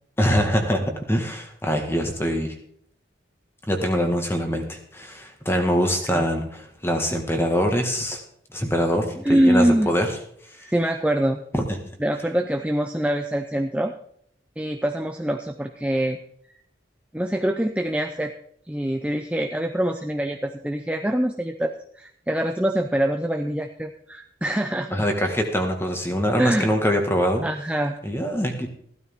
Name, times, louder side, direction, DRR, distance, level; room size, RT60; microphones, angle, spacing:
voice 1, 0.2-2.5 3.7-8.2 8.5-10.1 11.5-11.6 24.9-27.5 28.0-28.7, equal, 15° left, 4 dB, 1.8 m, -23 dB
voice 2, 9.2-9.9 10.6-11.4 12.0-13.9 14.6-16.2 17.1-18.3 18.7-24.9 26.4-26.7 27.4-27.9, right 1 dB, 5° right, 5 dB, 0.5 m, -24 dB
15.5 x 12.0 x 3.7 m, 0.65 s
head